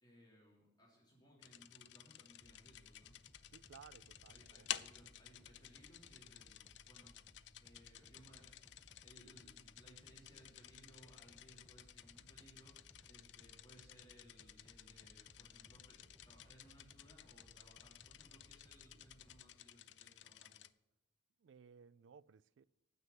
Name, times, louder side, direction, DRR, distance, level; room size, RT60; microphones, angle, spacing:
voice 1, 0.0-3.2 4.3-7.2 7.6-8.6 9.0-12.8 13.1-20.5, equal, 20° left, 3.1 m, -64 dB
sound 1, 1.4-20.7, left 12 dB, 65° left, 0.4 m, -54 dB
sound 2, 2.4-19.4, equal, ahead, 0.7 m, -66 dB
voice 2, 3.4-4.9 21.4-22.6, right 7 dB, 70° right, 0.3 m, -60 dB
9.5 x 7.9 x 7.8 m
head